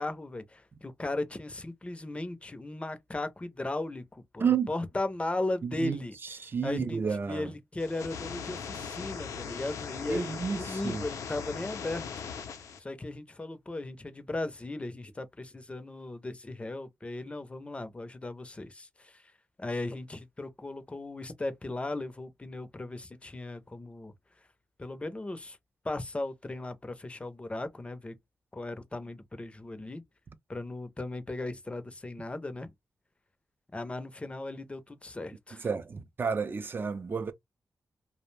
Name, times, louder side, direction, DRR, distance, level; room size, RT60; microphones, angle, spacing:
voice 1, 0.0-6.2 6.6-7.0 7.3-12.1 12.8-19.2 19.6-24.1 24.8-25.6 25.8-28.1 28.5-30.0 30.5-32.7 33.7-35.7, left 2 dB, 20° left, 0.5 m, -37 dB
voice 2, 4.4-4.7 5.6-6.0 6.4-7.5 10.1-11.0 35.6-37.3, right 6 dB, 40° right, 0.4 m, -31 dB
sound 1, 7.8-12.8, left 6 dB, 85° left, 0.5 m, -39 dB
2.5 x 2.0 x 3.1 m
cardioid pair, 85°, 5 cm